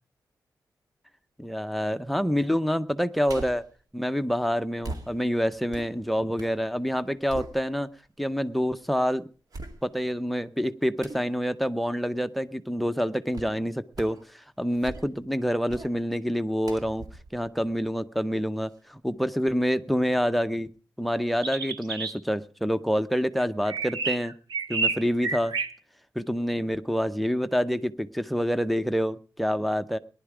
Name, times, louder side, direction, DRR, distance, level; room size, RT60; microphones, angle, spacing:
voice 1, 1.4-3.6 3.9-7.9 8.2-9.2 9.8-17.0 17.3-20.7 21.0-24.3 24.7-25.5 26.1-30.0, equal, ahead, 13 dB, 0.7 m, -27 dB
sound 1, 3.3-3.7 4.8-6.6 7.0-8.1 8.6-8.7 9.5-10.2 11.0-11.3 13.3-13.6 13.9-14.3 14.7-15.3 15.7-16.0 16.6-18.3 18.7-18.8, right 2 dB, 60° right, 2.2 m, -42 dB
sound 2, 21.4-22.1 23.4-25.7, right 4 dB, 85° right, 1.5 m, -29 dB
19.0 x 11.0 x 4.9 m, 0.41 s
wide cardioid pair, 130°, 7 cm